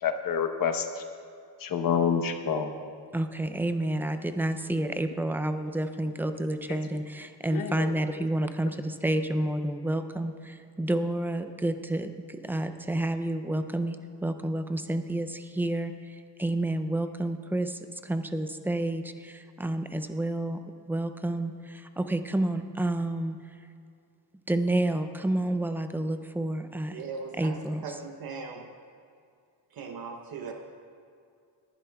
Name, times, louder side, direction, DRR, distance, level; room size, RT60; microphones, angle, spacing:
voice 1, 0.0-0.9 1.6-2.7 6.7-6.8 7.5-7.9, left 7 dB, 50° left, 7 dB, 0.9 m, -27 dB
voice 2, 3.1-20.6 20.9-23.4 24.5-27.0 27.4-28.0, right 1 dB, 5° right, 8 dB, 0.3 m, -30 dB
voice 3, 26.9-27.6 27.8-28.7 29.7-30.5, right 5 dB, 55° right, 3 dB, 0.9 m, -38 dB
20.0 x 11.5 x 2.3 m, 2.3 s
cardioid pair, 140°, 43 cm